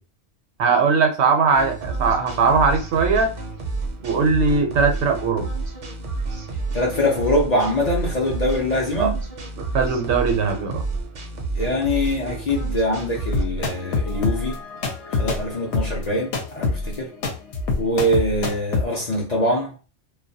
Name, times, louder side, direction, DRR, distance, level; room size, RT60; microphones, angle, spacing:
voice 1, 0.6-3.3 4.0-5.5 9.0-9.1 9.7-10.8, right 4 dB, 75° right, 0.8 m, -20 dB
sound 1, 1.5-13.4, right 3 dB, 55° right, 0.5 m, -29 dB
voice 2, 6.7-9.1 11.5-14.6 15.1-17.1 17.8-19.7, left 1 dB, 50° left, 0.5 m, -23 dB
sound 2, 13.3-18.8, left 3 dB, 75° left, 0.9 m, -25 dB
2.2 x 2.1 x 2.6 m
omnidirectional pair, 1.2 m